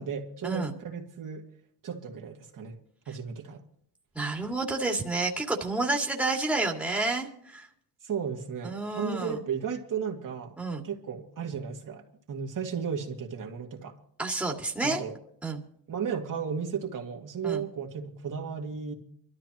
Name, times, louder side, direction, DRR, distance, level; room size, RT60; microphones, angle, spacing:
voice 1, 0.0-1.4 1.8-2.7 3.1-3.6 8.0-10.6 10.8-14.0 14.8-15.1 15.9-18.9, right 7 dB, 50° right, 2.2 m, -34 dB
voice 2, 4.1-7.7 8.6-9.4 10.6-10.8 14.2-15.0 15.4-15.6 17.4-17.6, right 3 dB, 5° right, 2.4 m, -29 dB
24.0 x 13.0 x 3.1 m
cardioid pair, 105°, 42 cm